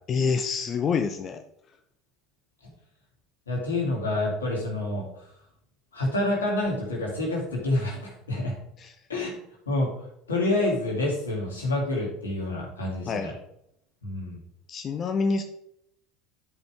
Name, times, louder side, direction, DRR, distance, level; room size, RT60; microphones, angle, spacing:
voice 1, 0.1-1.4 8.8-8.9 13.1-13.3 14.7-15.4, left 5 dB, 40° left, 6 dB, 0.7 m, -26 dB
voice 2, 3.5-5.2 5.9-8.5 9.1-9.4 9.7-13.3 14.0-14.4, left 2 dB, 90° left, -2 dB, 2.6 m, -28 dB
10.5 x 5.3 x 3.5 m, 0.75 s
hypercardioid pair, 70°, 0 cm